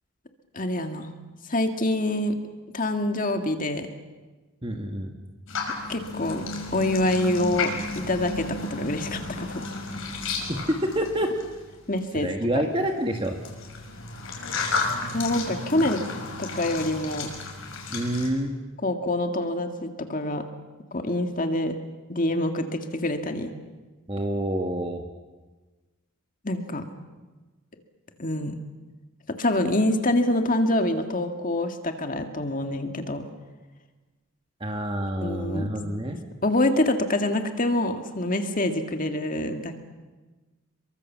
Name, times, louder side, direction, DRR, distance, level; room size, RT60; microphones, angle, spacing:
voice 1, 0.5-1.1 1.5-2.4 2.7-3.9 5.9-6.4 6.7-9.7 11.9-12.3 15.1-16.0 16.4-17.3 18.8-20.5 20.9-21.8 22.1-23.5 26.4-26.9 28.2-28.6 29.4-33.2 35.2-35.7 36.4-39.8, left 1 dB, 35° left, 5 dB, 1.9 m, -26 dB
voice 2, 4.6-5.1 10.5-11.3 12.1-13.4 17.9-18.5 24.1-25.0 34.6-36.2, right 1 dB, 25° right, 3 dB, 1.7 m, -27 dB
sound 1, 5.5-11.7 12.8-18.3, left 3 dB, 65° left, 5.9 m, -33 dB
28.5 x 23.5 x 7.4 m, 1.2 s
head